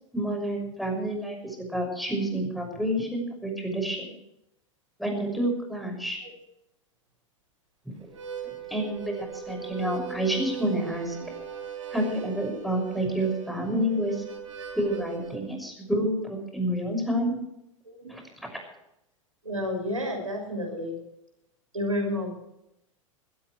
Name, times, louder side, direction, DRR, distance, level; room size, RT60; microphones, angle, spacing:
voice 1, 0.1-4.1 5.0-6.2 8.4-11.2 11.9-14.2 14.7-17.4 18.1-18.2, right 1 dB, ahead, 2 dB, 6.2 m, -29 dB
Harmonica, 8.0-15.4, right 8 dB, 70° right, 4.1 m, -39 dB
voice 2, 19.4-21.0 21.7-22.3, left 1 dB, 85° right, 2 dB, 6.2 m, -30 dB
22.0 x 16.0 x 3.3 m, 0.81 s
figure-of-eight pair, 90°, 17 cm